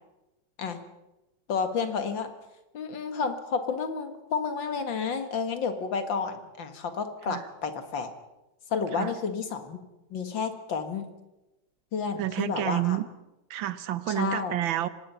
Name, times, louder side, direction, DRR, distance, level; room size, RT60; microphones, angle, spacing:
voice 1, 1.5-2.3 2.7-8.1 8.7-9.8 10.1-11.1 11.9-13.0 14.1-14.5, left 5 dB, 70° left, 8 dB, 2.4 m, -31 dB
voice 2, 12.2-13.1 13.5-14.9, right 13 dB, 80° right, 14 dB, 1.7 m, -29 dB
25.0 x 19.5 x 5.7 m, 1.0 s
omnidirectional pair, 2.1 m